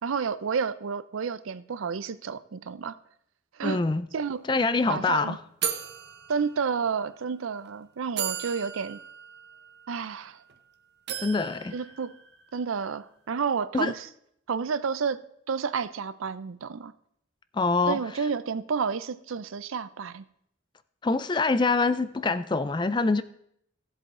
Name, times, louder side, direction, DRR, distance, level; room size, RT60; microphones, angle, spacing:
voice 1, 0.0-3.0 3.5-3.8 4.1-4.4 4.9-5.4 6.3-9.0 9.9-10.4 11.7-12.1 12.5-14.1 14.5-16.9 17.9-20.2, right 6 dB, 75° right, 0.5 m, -30 dB
voice 2, 3.6-4.0 4.5-5.4 11.2-11.7 13.7-13.9 17.5-18.0 21.0-23.2, left 3 dB, 20° left, 0.3 m, -25 dB
sound 1, 4.3-4.4 4.6-4.9 5.6-7.0 7.7-7.8 8.2-10.6 11.1-12.7, right 8 dB, 50° right, 0.8 m, -36 dB
15.5 x 7.8 x 3.8 m
head